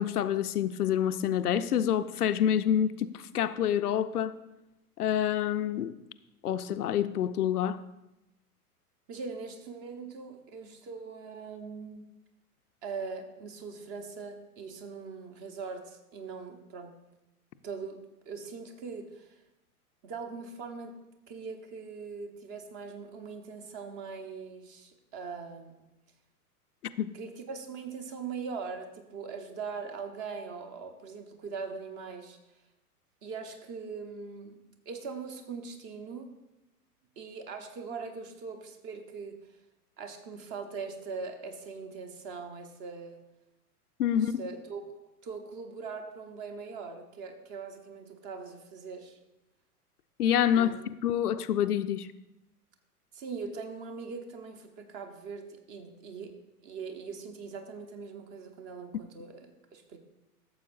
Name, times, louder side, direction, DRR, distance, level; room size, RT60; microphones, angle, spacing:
voice 1, 0.0-4.3 5.0-5.9 6.4-7.8 27.0-27.1 44.0-44.4 50.2-50.7 51.0-52.1, left 10 dB, 75° left, 0.6 m, -27 dB
voice 2, 9.1-12.1 12.8-16.9 17.6-18.0 18.2-19.3 20.0-21.0 21.3-25.9 27.1-32.4 33.2-34.6 34.8-36.3 37.2-39.4 40.0-43.2 44.2-44.9 45.2-49.2 50.5-50.7 53.1-56.3 56.6-60.0, right 5 dB, 30° right, 1.1 m, -41 dB
13.5 x 7.3 x 2.6 m
figure-of-eight pair, 105°, 46 cm